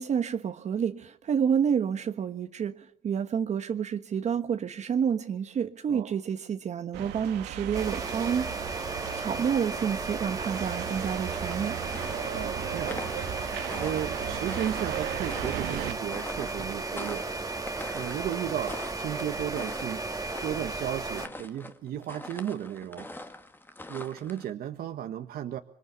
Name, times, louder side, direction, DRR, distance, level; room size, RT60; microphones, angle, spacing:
voice 1, 0.0-11.8, right 7 dB, 45° right, 1.3 m, -29 dB
sound 1, 6.9-15.9, right 11 dB, 85° right, 1.9 m, -37 dB
sound 2, 7.7-21.3, right 3 dB, 20° right, 2.1 m, -35 dB
sound 3, 11.5-24.5, left 1 dB, 10° left, 1.9 m, -44 dB
voice 2, 12.3-13.2 13.8-17.3 17.9-20.0 20.4-23.1 23.9-25.6, right 10 dB, 65° right, 1.5 m, -34 dB
26.0 x 23.5 x 7.0 m
cardioid pair, 110°, 17 cm